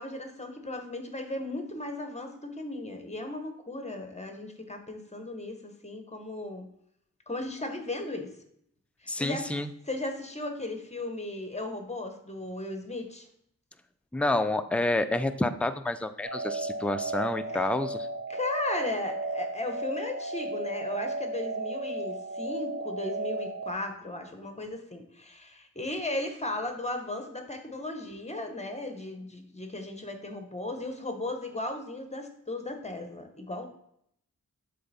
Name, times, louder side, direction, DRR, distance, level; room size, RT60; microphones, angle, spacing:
voice 1, 0.0-6.7 7.3-8.3 9.2-9.5 9.9-13.3 17.5-17.6 18.3-33.7, left 2 dB, 20° left, 5 dB, 0.9 m, -36 dB
voice 2, 9.1-9.7 14.1-18.1, left 2 dB, 5° left, 9 dB, 0.3 m, -29 dB
sound 1, 16.2-23.7, right 2 dB, 40° right, 0.9 m, -34 dB
7.5 x 3.4 x 4.1 m, 0.71 s
wide cardioid pair, 85°, 35 cm